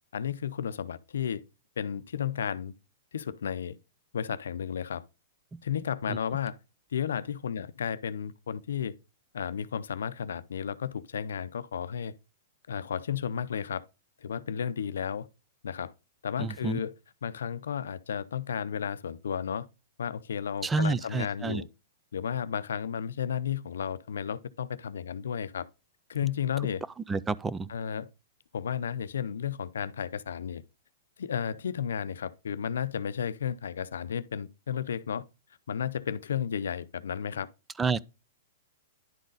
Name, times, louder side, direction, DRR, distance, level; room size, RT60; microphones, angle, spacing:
voice 1, 0.1-1.4 1.8-2.7 3.1-3.8 4.1-5.0 5.6-6.6 6.9-8.9 9.3-12.1 12.7-13.8 14.2-15.3 15.6-15.9 16.2-16.9 17.2-19.7 20.0-21.7 22.1-25.7 26.1-26.8 27.7-28.1 28.5-30.6 31.2-35.2 35.7-37.5, left 8 dB, 90° left, 0.5 m, -33 dB
voice 2, 16.4-16.8 20.6-21.6 27.1-27.7 37.8-38.0, right 4 dB, 10° right, 0.3 m, -29 dB
10.5 x 3.9 x 4.0 m
hypercardioid pair, 145°, 0 cm